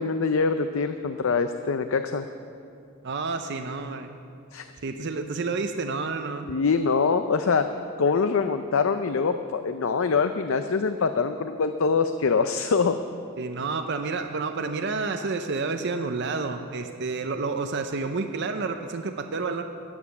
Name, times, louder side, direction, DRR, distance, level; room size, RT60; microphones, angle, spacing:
voice 1, 0.0-2.2 4.5-4.7 6.5-7.7 8.0-13.0, left 5 dB, 70° left, 9 dB, 0.5 m, -24 dB
voice 2, 3.0-4.1 4.8-6.5 13.4-19.6, right 4 dB, 55° right, 6 dB, 0.7 m, -29 dB
15.0 x 9.7 x 7.1 m, 2.5 s
head